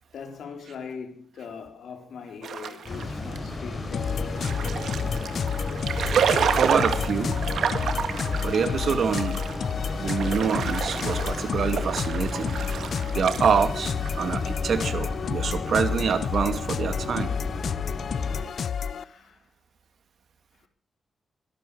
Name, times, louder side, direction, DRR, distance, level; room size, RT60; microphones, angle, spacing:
voice 1, 0.1-4.7 19.0-19.4, left 6 dB, 80° left, 4.3 m, -41 dB
sound 1, 2.4-15.0, right 7 dB, 80° right, 1.9 m, -30 dB
sound 2, 2.8-18.4, left 2 dB, 35° left, 5.0 m, -34 dB
sound 3, 3.9-19.0, left 7 dB, 60° left, 0.7 m, -30 dB
voice 2, 6.5-7.4 8.4-9.4 10.0-12.6 13.1-17.3, right 6 dB, 65° right, 2.5 m, -26 dB
22.0 x 12.0 x 5.2 m
wide cardioid pair, 120°, 0 cm